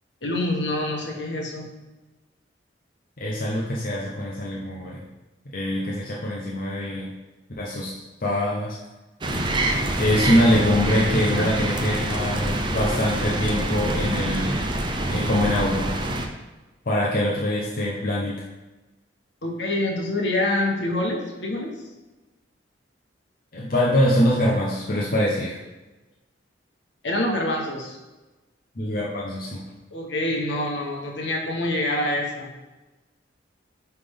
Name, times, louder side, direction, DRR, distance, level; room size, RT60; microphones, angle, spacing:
voice 1, 0.2-1.7 11.1-11.5 19.4-21.7 27.0-28.0 29.9-32.5, left 1 dB, 65° left, 0 dB, 1.4 m, -26 dB
voice 2, 3.2-5.1 5.5-7.1 7.6-8.8 10.0-14.6 15.1-15.9 16.9-18.4 23.5-25.6 28.8-29.7, left 1 dB, 45° left, -5 dB, 0.8 m, -24 dB
sound 1, 9.2-16.3, right 1 dB, 25° right, 0.5 m, -26 dB
9.0 x 3.4 x 3.7 m, 1.1 s
head